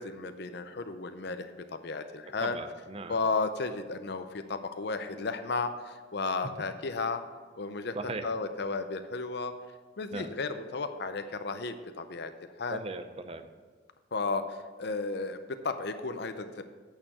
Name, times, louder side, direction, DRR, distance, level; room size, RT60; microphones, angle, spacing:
voice 1, 0.0-2.6 3.1-7.2 7.6-8.0 8.2-9.5 10.0-12.3 12.6-12.8 14.1-16.6, left 3 dB, 60° left, 9 dB, 0.6 m, -34 dB
voice 2, 2.4-3.2 7.9-8.3 10.1-10.3 12.7-13.5, right 3 dB, 30° right, 9 dB, 0.6 m, -38 dB
8.8 x 6.7 x 6.3 m, 1.5 s
head